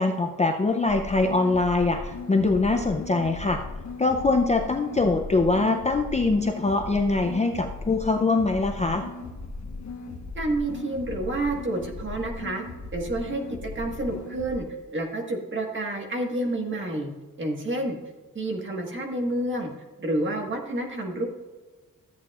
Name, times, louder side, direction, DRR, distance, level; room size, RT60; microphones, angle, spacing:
voice 1, 0.0-3.6 4.0-9.0, left 3 dB, 20° left, 4 dB, 0.5 m, -23 dB
sound 1, 0.9-14.6, left 3 dB, 55° left, 1.1 m, -38 dB
voice 2, 10.3-12.6 12.9-14.6 14.9-17.1 17.4-18.0 18.3-19.7 20.0-21.3, right 1 dB, 35° right, 1 dB, 1.5 m, -29 dB
13.5 x 8.6 x 2.4 m, 1.3 s
wide cardioid pair, 160°, 34 cm